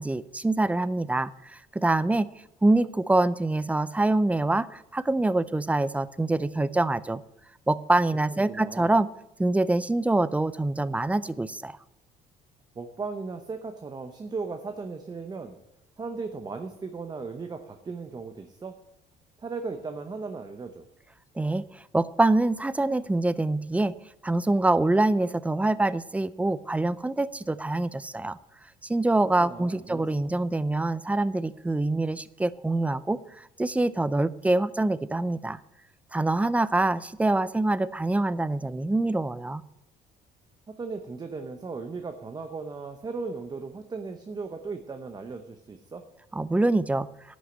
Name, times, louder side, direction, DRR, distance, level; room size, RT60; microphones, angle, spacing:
voice 1, 0.0-2.3 2.6-7.2 7.7-9.1 9.4-11.8 21.4-23.9 24.2-28.4 28.8-35.6 36.1-39.6 46.3-47.1, right 2 dB, 10° right, 17 dB, 0.5 m, -25 dB
voice 2, 8.3-8.9 12.8-15.6 16.0-18.8 19.4-20.9 29.2-30.1 40.8-46.0, right 4 dB, 25° right, 6 dB, 0.9 m, -37 dB
11.5 x 6.3 x 8.1 m, 0.87 s
cardioid pair, 110°, 17 cm